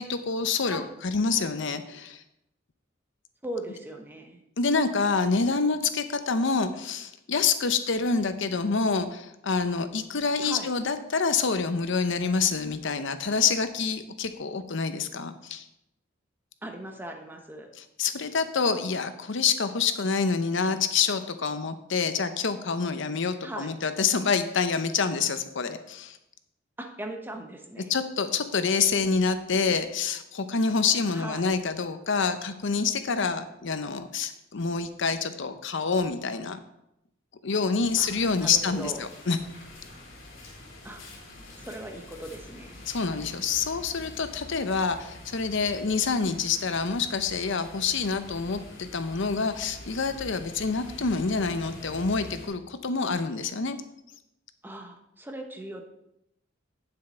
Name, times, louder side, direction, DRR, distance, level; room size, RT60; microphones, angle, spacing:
voice 1, 0.0-2.2 4.6-15.6 18.0-26.2 27.9-36.6 37.4-38.9 39.3-39.4 42.9-53.8, left 5 dB, 65° left, 10 dB, 0.8 m, -27 dB
voice 2, 3.4-4.4 10.4-10.7 16.6-17.7 23.4-23.7 26.8-27.9 31.1-31.4 38.0-38.1 38.4-39.1 40.8-41.0 41.6-42.8 54.6-55.8, right 1 dB, 10° right, 3 dB, 1.0 m, -39 dB
sound 1, 37.8-52.5, left 1 dB, 85° left, 3.0 m, -46 dB
8.9 x 7.3 x 4.3 m, 0.84 s
head